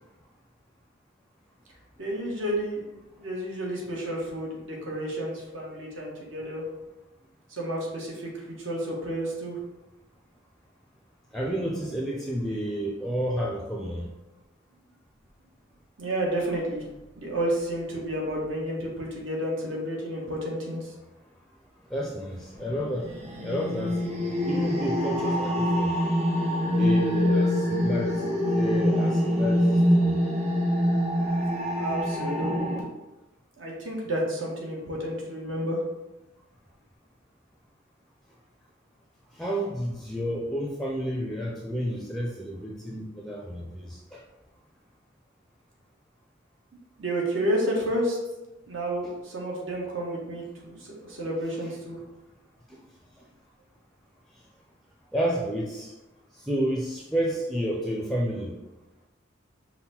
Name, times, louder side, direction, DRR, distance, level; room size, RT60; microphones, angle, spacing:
voice 1, 2.0-6.6 7.5-9.6 16.0-16.9 17.2-20.9 31.8-32.8 33.6-35.8 47.0-48.2 48.7-52.0, right 1 dB, 80° right, -2 dB, 1.2 m, -31 dB
voice 2, 11.3-14.1 21.9-23.1 23.4-24.0 24.5-26.0 26.7-28.2 28.5-29.7 30.0-30.1 39.3-44.2 52.7-52.8 55.1-55.9 56.3-58.6, equal, ahead, -2 dB, 0.4 m, -30 dB
sound 1, 22.6-32.8, equal, 35° right, 0.9 m, -25 dB
5.5 x 2.1 x 4.2 m, 1.0 s
head